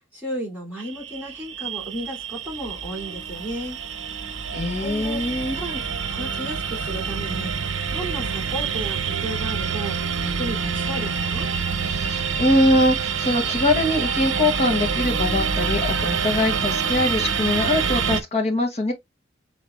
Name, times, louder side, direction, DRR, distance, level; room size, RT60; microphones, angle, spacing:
voice 1, 0.1-3.8 4.8-5.2 5.5-5.8 6.1-7.5 7.9-11.5, right 1 dB, 10° right, 3.0 m, -33 dB
sound 1, 0.8-18.2, right 6 dB, 90° right, 0.6 m, -26 dB
voice 2, 4.5-5.5 11.9-18.9, left 1 dB, 35° left, 1.4 m, -22 dB
4.8 x 3.8 x 2.4 m
head